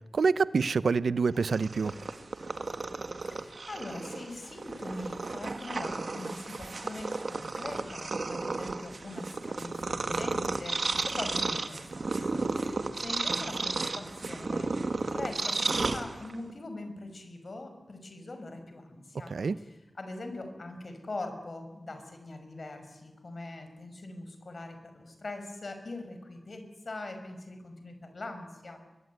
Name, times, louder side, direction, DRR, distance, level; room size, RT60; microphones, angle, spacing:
voice 1, 0.1-1.9 19.3-19.6, right 4 dB, 85° right, 16 dB, 0.8 m, -26 dB
Purr, 1.4-16.5, right 3 dB, 60° right, 1.8 m, -33 dB
voice 2, 3.2-28.8, left 2 dB, 55° left, 7 dB, 5.7 m, -42 dB
23.5 x 23.0 x 9.6 m, 1.1 s
wide cardioid pair, 80°, 0 cm